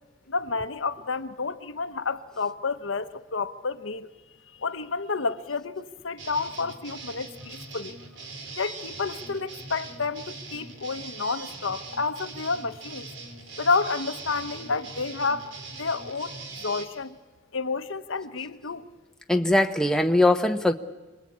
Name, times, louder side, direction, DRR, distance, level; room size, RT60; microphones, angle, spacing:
voice 1, 0.3-4.1 4.6-8.0 8.6-13.1 13.6-15.5 15.8-16.3 16.6-17.2 17.5-18.9, left 4 dB, 80° left, 1.1 m, -30 dB
sound 1, 6.2-16.8, right 3 dB, 70° right, 3.4 m, -41 dB
voice 2, 19.3-20.7, left 1 dB, 5° left, 0.9 m, -21 dB
27.0 x 21.5 x 8.6 m
head